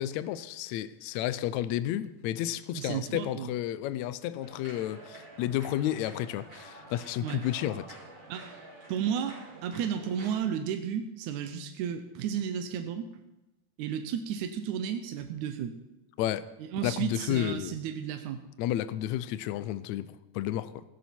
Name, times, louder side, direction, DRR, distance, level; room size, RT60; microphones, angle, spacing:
voice 1, 0.0-8.0 16.2-16.5 16.8-17.8 18.6-20.8, left 12 dB, 80° left, 1.9 m, -32 dB
voice 2, 2.8-3.5 7.2-7.4 8.3-8.6 8.9-13.1 13.8-15.8 16.7-18.4, right 8 dB, 80° right, 2.2 m, -33 dB
sound 1, 4.4-10.4, right 2 dB, 40° right, 6.8 m, -49 dB
16.5 x 14.0 x 4.5 m
omnidirectional pair, 3.4 m